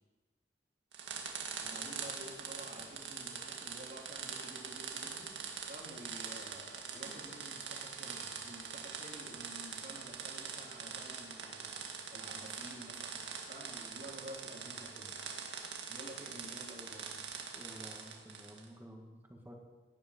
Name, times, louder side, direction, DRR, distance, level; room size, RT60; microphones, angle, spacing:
sound 1, 0.9-18.7, right 6 dB, 75° right, 2.0 m, -43 dB
voice 1, 1.6-13.2 13.5-15.2 15.9-17.1, right 1 dB, 45° right, -2 dB, 2.6 m, -51 dB
voice 2, 17.5-19.5, equal, 10° right, 1 dB, 2.0 m, -52 dB
17.5 x 10.5 x 5.5 m, 1.2 s
head